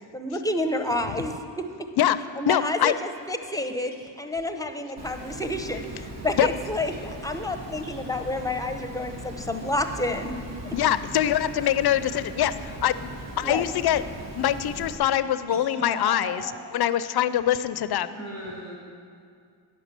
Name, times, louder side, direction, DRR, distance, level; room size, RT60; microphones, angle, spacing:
voice 1, 0.1-1.6 2.4-10.3 13.4-13.6, left 1 dB, 10° left, 7 dB, 0.8 m, -29 dB
voice 2, 2.5-2.9 6.4-6.5 10.7-13.1 13.4-14.0 14.3-16.4 16.7-18.1, left 11 dB, 60° left, 14 dB, 0.5 m, -23 dB
Water, 5.0-15.0, right 1 dB, 70° right, 1.5 m, -39 dB
voice 3, 15.5-16.7 18.1-18.7, equal, 85° right, -8 dB, 2.7 m, -37 dB
9.7 x 6.1 x 6.7 m, 2.3 s
cardioid pair, 60°, 45 cm